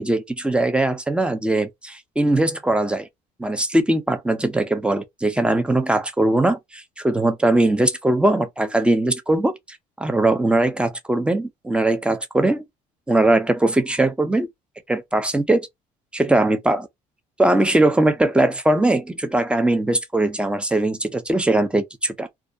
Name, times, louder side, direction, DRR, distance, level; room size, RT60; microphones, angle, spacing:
voice 1, 0.0-3.1 3.4-12.6 13.1-14.5 14.9-15.7 16.1-16.9 17.4-22.3, right 2 dB, 5° right, 0.6 m, -20 dB
2.3 x 2.1 x 2.6 m
supercardioid pair, 80°, 15 cm